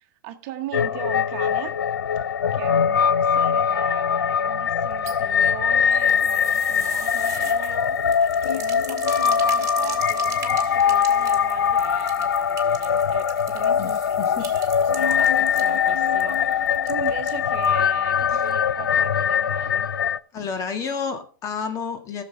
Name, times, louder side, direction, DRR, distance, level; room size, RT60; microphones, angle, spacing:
voice 1, 0.0-1.8 2.5-19.9, right 12 dB, 50° right, 1.1 m, -39 dB
sound 1, 0.7-20.2, left 7 dB, 90° left, 0.4 m, -22 dB
sound 2, 4.8-17.8 18.1-18.2 18.5-18.6, right 9 dB, 30° right, 1.9 m, -40 dB
voice 2, 13.8-14.5 20.3-22.2, left 5 dB, 30° left, 1.9 m, -30 dB
15.5 x 6.8 x 3.4 m
hypercardioid pair, 110°, 11 cm